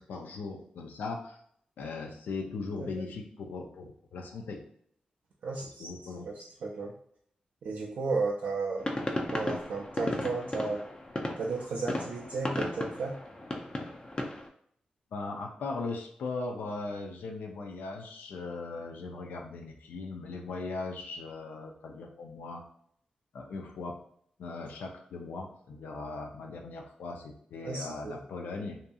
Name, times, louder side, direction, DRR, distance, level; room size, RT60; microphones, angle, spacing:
voice 1, 0.0-1.4 1.8-4.6 5.6-6.3 15.1-22.6 23.3-24.0 24.4-28.8, left 3 dB, 90° left, 2 dB, 0.4 m, -39 dB
voice 2, 5.4-5.9 6.2-7.0 7.6-8.9 9.3-10.9 11.4-13.2 27.6-28.2, right 3 dB, 80° right, -4 dB, 0.4 m, -34 dB
sound 1, 8.8-14.5, left 1 dB, 30° left, 0.5 m, -35 dB
2.7 x 2.5 x 2.3 m, 0.65 s
cardioid pair, 60°, 3 cm